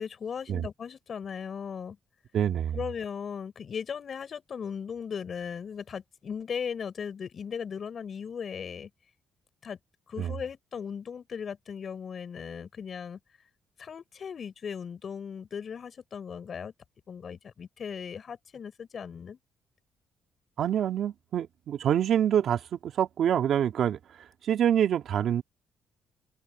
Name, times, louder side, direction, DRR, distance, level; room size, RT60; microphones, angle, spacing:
voice 1, 0.0-2.0 2.7-8.9 9.6-9.8 10.1-13.2 13.8-16.7 17.1-19.4, left 7 dB, 50° left, 7.4 m, -37 dB
voice 2, 2.3-2.8 10.2-10.3 20.6-24.0 24.4-25.4, right 9 dB, 65° right, 2.5 m, -26 dB
open air
cardioid pair, 90°, 0 cm